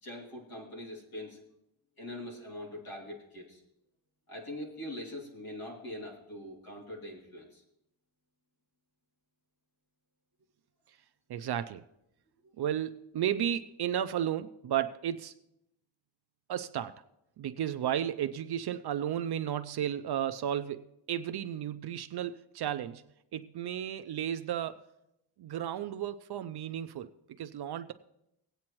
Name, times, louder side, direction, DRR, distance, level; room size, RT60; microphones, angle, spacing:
voice 1, 0.0-1.4 2.0-3.6 4.3-7.6 12.4-12.5, left 1 dB, 45° left, -2 dB, 3.1 m, -43 dB
voice 2, 11.3-11.8 12.6-15.3 16.5-17.0 17.4-23.0 23.3-24.8 25.4-27.1 27.4-27.9, right 10 dB, 55° right, 11 dB, 0.5 m, -33 dB
20.0 x 8.5 x 3.0 m, 0.83 s
wide cardioid pair, 175°, 49 cm